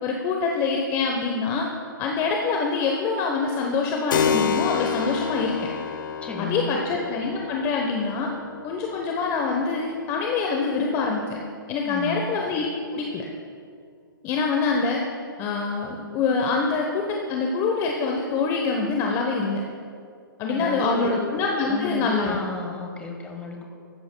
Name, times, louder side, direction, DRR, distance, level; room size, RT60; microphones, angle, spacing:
voice 1, 0.0-1.7 2.0-5.7 6.4-8.3 8.6-11.4 11.7-13.2 14.2-15.0 15.4-19.6 20.4-22.4, left 4 dB, 25° left, 1 dB, 1.0 m, -25 dB
Keyboard (musical), 4.1-12.3, left 7 dB, 60° left, 0.7 m, -31 dB
voice 2, 6.2-6.8 11.8-12.3 20.5-21.2 21.7-23.6, left 1 dB, 10° left, 1 dB, 1.5 m, -32 dB
15.0 x 13.5 x 2.3 m, 2.3 s
hypercardioid pair, 140°, 12 cm